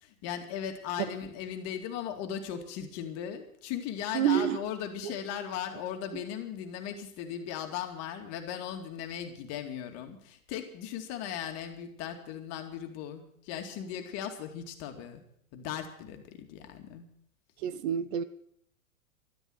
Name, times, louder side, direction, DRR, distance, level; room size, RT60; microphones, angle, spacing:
voice 1, 0.0-15.2 15.5-17.1, left 9 dB, 35° left, 5 dB, 2.5 m, -38 dB
voice 2, 4.1-4.6 5.0-5.1 17.6-18.2, right 10 dB, 50° right, 14 dB, 1.2 m, -28 dB
12.5 x 12.0 x 8.0 m, 0.67 s
hypercardioid pair, 125°, 41 cm